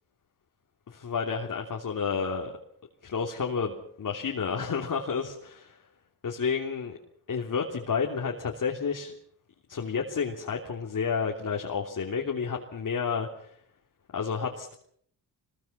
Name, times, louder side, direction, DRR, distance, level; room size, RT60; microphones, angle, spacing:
voice 1, 0.9-2.5 3.0-5.8 6.2-7.0 7.3-9.1 9.7-13.5 14.1-14.7, left 6 dB, 50° left, 1 dB, 3.1 m, -30 dB
25.0 x 21.5 x 5.9 m, 0.65 s
cardioid pair, 90°, 41 cm